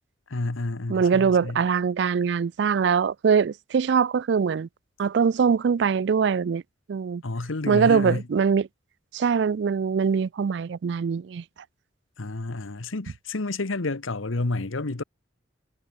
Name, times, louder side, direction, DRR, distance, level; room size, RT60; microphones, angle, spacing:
voice 1, 0.3-1.6 7.2-8.3 12.2-15.0, left 2 dB, 85° left, 1.2 m, -30 dB
voice 2, 0.9-4.7 5.0-6.6 6.9-7.2 7.7-8.7 9.1-11.4, right 6 dB, 60° right, 0.3 m, -22 dB
head